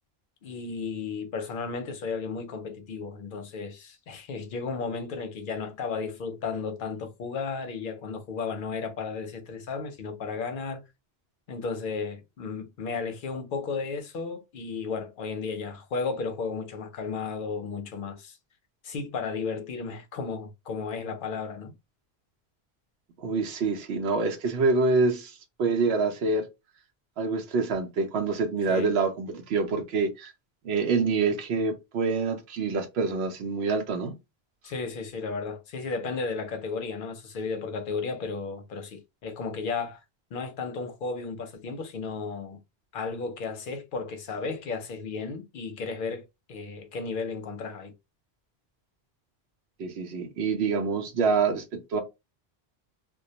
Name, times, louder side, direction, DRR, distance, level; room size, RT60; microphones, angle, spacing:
voice 1, 0.4-10.8 11.5-18.4 18.8-21.7 28.7-28.9 34.6-40.0 40.3-42.6 42.9-47.9, left 4 dB, 60° left, 0.7 m, -34 dB
voice 2, 23.2-26.5 27.2-30.3 30.6-34.1 49.8-52.0, right 4 dB, 80° right, 0.8 m, -26 dB
2.2 x 2.1 x 2.7 m
omnidirectional pair, 1.1 m